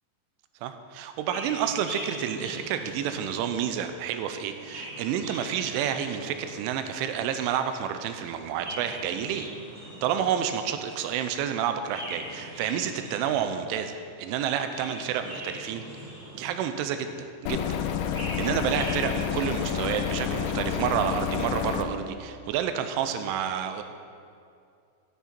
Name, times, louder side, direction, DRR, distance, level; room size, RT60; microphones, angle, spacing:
voice 1, 0.6-9.5 10.0-15.8 16.3-17.8 18.4-23.8, right 9 dB, 90° right, 8 dB, 3.1 m, -29 dB
Chirp tweet, 1.2-3.7 4.4-6.8 8.3-10.5 11.8-13.7 14.5-16.8 17.8-20.4, right 1 dB, 45° right, 1.2 m, -42 dB
sound 1, 17.5-21.9, left 8 dB, 80° left, 2.7 m, -29 dB
13.5 x 8.4 x 4.4 m, 2.4 s
omnidirectional pair, 5.5 m